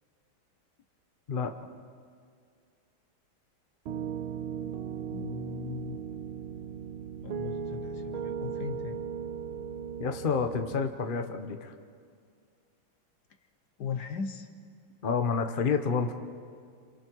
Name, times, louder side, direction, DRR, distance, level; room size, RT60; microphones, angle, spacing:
Piano, 3.9-10.7, right 7 dB, 80° right, 1.7 m, -37 dB
voice 1, 5.1-6.0 7.2-9.0 13.8-14.5, left 7 dB, 55° left, 8 dB, 1.5 m, -38 dB
voice 2, 10.0-11.7 15.0-16.1, left 5 dB, 40° left, 6 dB, 0.8 m, -29 dB
28.0 x 27.5 x 4.7 m, 2.2 s
omnidirectional pair, 2.4 m